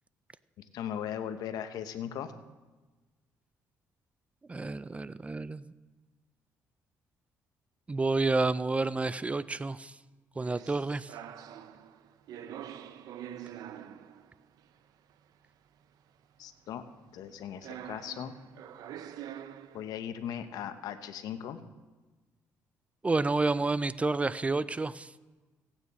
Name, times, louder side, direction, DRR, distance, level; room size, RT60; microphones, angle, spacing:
voice 1, 0.7-2.3 16.4-16.8 17.1-18.3 19.7-21.6, left 9 dB, 80° left, 10 dB, 0.8 m, -38 dB
voice 2, 4.5-5.6 7.9-9.9 10.4-11.1 23.0-25.1, right 3 dB, 20° right, 17 dB, 0.4 m, -29 dB
sound 1, 10.4-14.6 15.1-15.2 17.3-17.4 17.6-19.9, right 10 dB, 75° right, 0.6 m, -45 dB
16.5 x 8.9 x 4.1 m, 1.2 s
cardioid pair, 90°, 6 cm